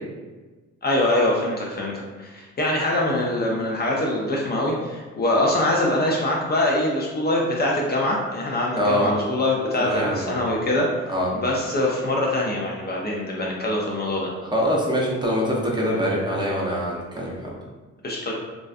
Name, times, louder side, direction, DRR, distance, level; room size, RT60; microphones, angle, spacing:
voice 1, 0.8-14.3 18.0-18.3, left 1 dB, 35° left, -3 dB, 0.4 m, -24 dB
voice 2, 8.8-9.1 9.8-10.3 11.1-11.3 14.5-17.5, equal, 15° right, -4 dB, 0.6 m, -24 dB
2.3 x 2.1 x 2.5 m, 1.3 s
cardioid pair, 90°, 30 cm